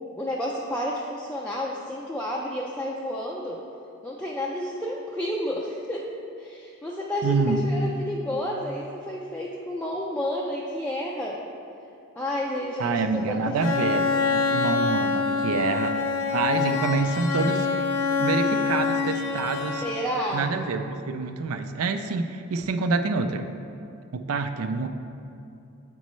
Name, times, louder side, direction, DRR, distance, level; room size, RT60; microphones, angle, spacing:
voice 1, 0.2-3.6 4.0-11.4 12.2-13.7 19.8-20.5, left 1 dB, 5° left, -4 dB, 0.3 m, -30 dB
voice 2, 7.2-7.6 12.8-15.9 16.3-17.7 18.2-19.8 20.3-23.5 24.1-24.9, right 4 dB, 90° right, 8 dB, 0.4 m, -27 dB
Bowed string instrument, 13.6-20.3, left 5 dB, 90° left, 0.6 m, -25 dB
8.1 x 5.3 x 3.1 m, 2.6 s
head